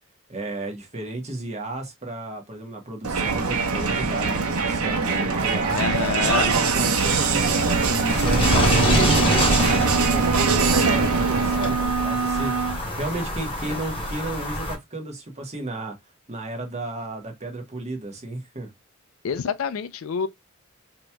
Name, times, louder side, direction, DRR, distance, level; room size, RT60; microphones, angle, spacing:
voice 1, 0.3-5.8 6.2-15.9 16.3-18.7, right 2 dB, 30° right, 1.3 m, -33 dB
Crowd, 3.0-11.9, right 4 dB, 90° right, 0.9 m, -23 dB
voice 2, 5.7-6.5 13.7-13.8 19.2-20.3, left 6 dB, 70° left, 0.4 m, -27 dB
sound 1, 6.9-14.7, equal, 25° left, 1.3 m, -26 dB
sound 2, 8.2-12.8, right 6 dB, 70° right, 0.7 m, -26 dB
5.1 x 2.9 x 2.2 m
head